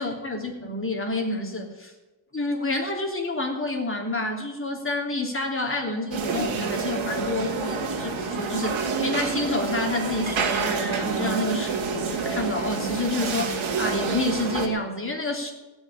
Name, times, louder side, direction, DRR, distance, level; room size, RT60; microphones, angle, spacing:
voice 1, 0.0-1.9 2.3-15.5, left 2 dB, 25° left, 1 dB, 3.1 m, -28 dB
sound 1, 6.1-14.7, right 5 dB, 80° right, 2.2 m, -28 dB
16.5 x 6.3 x 9.9 m, 1.1 s
wide cardioid pair, 120°, 47 cm